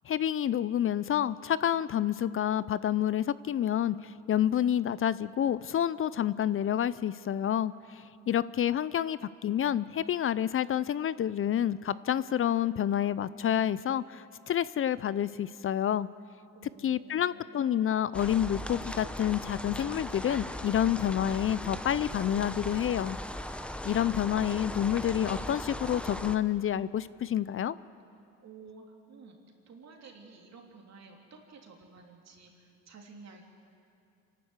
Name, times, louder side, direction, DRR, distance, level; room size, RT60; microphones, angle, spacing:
voice 1, 0.1-16.1 16.8-23.2 23.8-27.8, left 10 dB, 45° left, 17 dB, 0.5 m, -29 dB
voice 2, 8.2-8.8 16.5-17.5 28.4-29.4 29.7-33.4, right 4 dB, 60° right, 1 dB, 3.3 m, -52 dB
sound 1, 18.1-26.4, left 1 dB, 5° left, 0.9 m, -38 dB
26.5 x 12.0 x 8.2 m, 2.5 s
cardioid pair, 90°, 30 cm